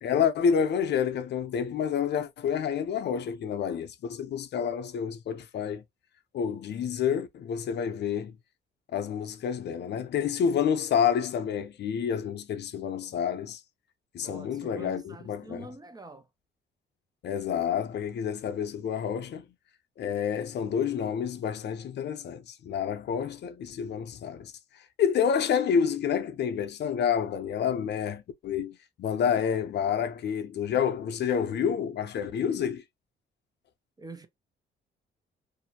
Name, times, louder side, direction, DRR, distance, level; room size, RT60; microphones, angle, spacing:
voice 1, 0.0-5.8 6.3-8.3 8.9-13.6 14.1-15.7 17.2-19.5 20.0-24.5 25.0-32.8, left 7 dB, 60° left, 0.5 m, -29 dB
voice 2, 14.2-16.3 34.0-34.3, right 3 dB, 20° right, 0.4 m, -45 dB
2.5 x 2.0 x 2.7 m
cardioid pair, 90°, 20 cm